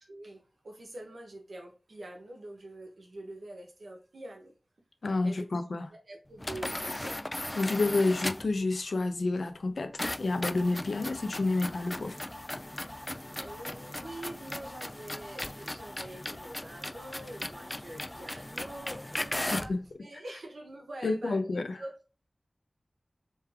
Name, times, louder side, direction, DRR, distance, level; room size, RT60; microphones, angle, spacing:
voice 1, 0.1-4.5 5.2-5.6 5.9-7.2 13.3-21.9, right 1 dB, 90° right, 1.0 m, -45 dB
voice 2, 5.0-5.9 7.6-9.9 10.2-12.2 19.5-19.8 21.0-21.6, left 3 dB, 90° left, 0.5 m, -29 dB
sound 1, 6.4-8.6 10.0-19.8, left 1 dB, 25° left, 0.3 m, -37 dB
3.4 x 3.2 x 3.4 m
wide cardioid pair, 45°, 0 cm